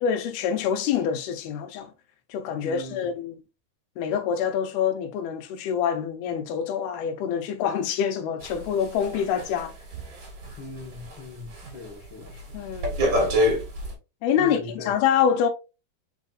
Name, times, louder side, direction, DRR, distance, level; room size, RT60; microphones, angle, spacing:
voice 1, 0.0-1.9 2.3-3.4 4.0-9.7 12.5-13.0 14.2-14.6 14.9-15.5, left 8 dB, 90° left, 2.7 m, -26 dB
voice 2, 2.6-3.1 10.6-12.6 14.4-14.9, left 3 dB, 70° left, 1.2 m, -39 dB
sound 1, 8.4-11.2 11.5-11.9 12.2-13.9, equal, 45° right, 1.7 m, -27 dB
5.5 x 4.1 x 2.3 m
omnidirectional pair, 4.3 m